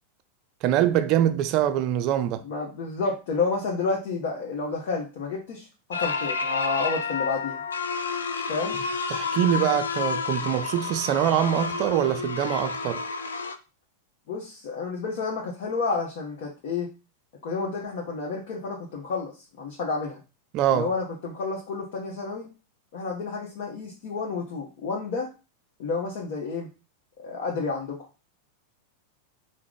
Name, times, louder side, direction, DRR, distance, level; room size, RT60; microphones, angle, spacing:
voice 1, 0.6-2.4 9.1-13.0 20.5-20.9, right 11 dB, 40° right, 0.4 m, -24 dB
voice 2, 2.4-7.6 8.5-8.8 14.3-16.9 17.4-19.3 19.6-20.2 20.7-22.5 22.9-25.3 25.8-26.7 27.2-28.0, left 4 dB, 50° left, 0.9 m, -30 dB
sound 1, 5.9-13.6, left 5 dB, 70° left, 0.4 m, -30 dB
4.6 x 2.1 x 3.7 m
figure-of-eight pair, 90°, 0 cm